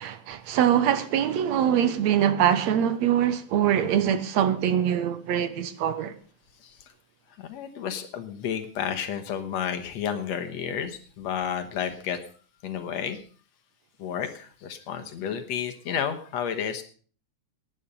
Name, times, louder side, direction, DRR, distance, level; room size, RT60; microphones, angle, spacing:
voice 1, 0.0-6.1, right 9 dB, 70° right, 2.1 m, -23 dB
voice 2, 7.4-12.2 12.6-13.2 14.0-16.8, left 8 dB, 65° left, 2.3 m, -31 dB
18.5 x 10.0 x 5.4 m
omnidirectional pair, 3.5 m